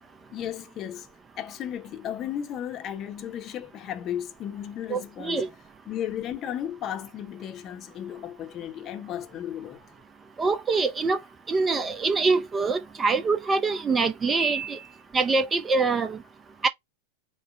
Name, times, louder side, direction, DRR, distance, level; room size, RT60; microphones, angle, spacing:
voice 1, 0.3-1.1 1.4-5.5 5.9-9.9, left 10 dB, 30° left, 0.8 m, -34 dB
voice 2, 4.9-5.5 10.4-11.2 11.5-14.8 15.1-16.2 16.6-16.7, right 4 dB, 20° right, 0.5 m, -24 dB
4.9 x 2.1 x 4.7 m
figure-of-eight pair, 90°, 0 cm